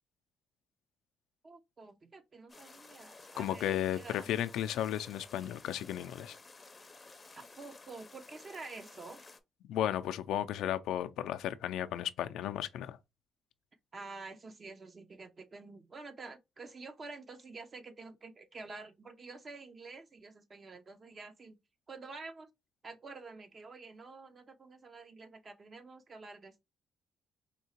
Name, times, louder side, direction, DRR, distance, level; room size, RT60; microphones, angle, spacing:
voice 1, 1.4-4.3 7.3-9.2 13.9-21.6 21.9-22.5 22.8-26.6, right 3 dB, 40° right, 0.7 m, -48 dB
sound 1, 2.5-9.4, left 3 dB, 25° left, 0.6 m, -54 dB
voice 2, 3.4-6.4 9.6-13.0, left 11 dB, 85° left, 0.4 m, -34 dB
4.4 x 2.8 x 2.8 m
cardioid pair, 90°, 0 cm